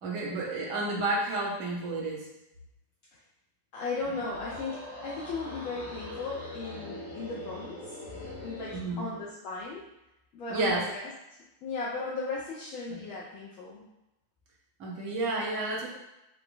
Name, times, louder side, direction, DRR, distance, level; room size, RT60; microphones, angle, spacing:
voice 1, 0.0-2.3 8.7-9.0 10.5-10.8 12.9-13.0 14.8-15.9, right 2 dB, 45° right, -3 dB, 0.8 m, -31 dB
voice 2, 3.7-8.0 8.4-9.9 10.3-11.1 11.6-13.9, left 3 dB, 40° left, -5 dB, 0.4 m, -36 dB
sound 1, 4.0-8.9, left 1 dB, 70° left, 1.0 m, -42 dB
2.9 x 2.1 x 2.3 m, 0.92 s
figure-of-eight pair, 90°, 0 cm